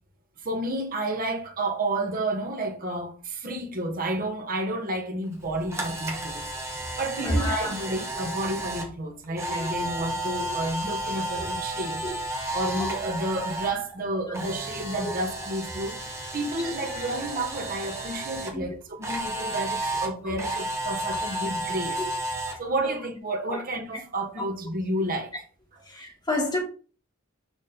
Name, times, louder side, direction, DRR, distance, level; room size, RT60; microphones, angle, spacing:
voice 1, 0.4-16.0 16.3-22.0 22.3-25.3 26.4-26.5, right 1 dB, 45° right, 1.6 m, -31 dB
Camera, 5.4-13.7 14.0-18.5 19.0-22.5, right 1 dB, 15° right, 1.8 m, -32 dB
voice 2, 7.2-7.7 11.4-11.5 12.0-12.1 12.8-12.9 18.5-18.6 19.3-19.4 25.9-26.6, left 1 dB, 20° left, 3.6 m, -28 dB
6.6 x 6.1 x 3.8 m
head